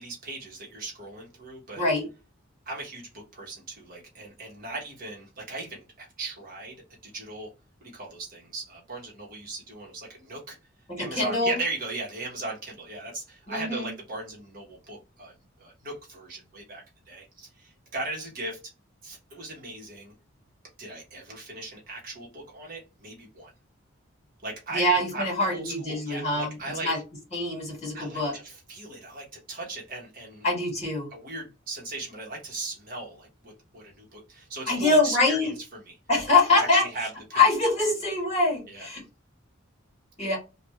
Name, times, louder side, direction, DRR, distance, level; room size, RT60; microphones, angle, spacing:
voice 1, 0.0-1.8 2.7-6.8 7.0-7.5 7.8-10.6 11.0-18.7 19.0-20.1 20.8-23.5 24.4-26.9 27.9-30.4 31.1-35.5 35.9-36.0 36.5-37.4 38.7-38.9, right 2 dB, 40° right, -2 dB, 1.2 m, -38 dB
voice 2, 11.0-11.6 13.5-13.9 24.7-26.5 26.8-27.0 27.3-28.3 30.4-31.1 34.7-35.5 36.1-36.8 37.3-39.0 40.2-40.4, left 2 dB, 30° left, -3 dB, 2.1 m, -24 dB
3.4 x 2.5 x 3.1 m, 0.29 s
head